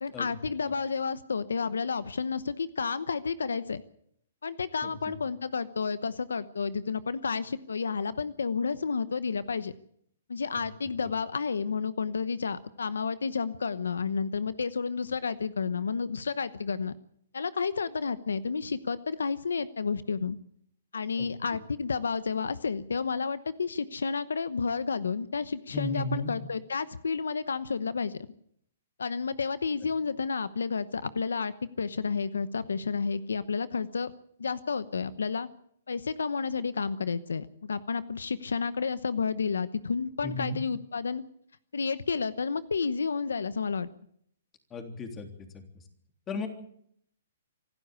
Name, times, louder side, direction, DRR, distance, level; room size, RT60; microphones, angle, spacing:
voice 1, 0.0-3.8 4.4-9.7 10.3-16.9 17.3-20.4 20.9-28.3 29.0-34.1 34.4-35.5 35.9-41.2 41.7-43.9, left 5 dB, 90° left, 15 dB, 0.9 m, -31 dB
voice 2, 4.8-5.1 11.0-11.1 21.2-21.3 25.7-26.3 40.2-40.6 44.7-45.6 46.3-46.5, left 2 dB, 20° left, 5 dB, 3.3 m, -35 dB
25.5 x 12.5 x 8.3 m, 0.69 s
hypercardioid pair, 140°, 0 cm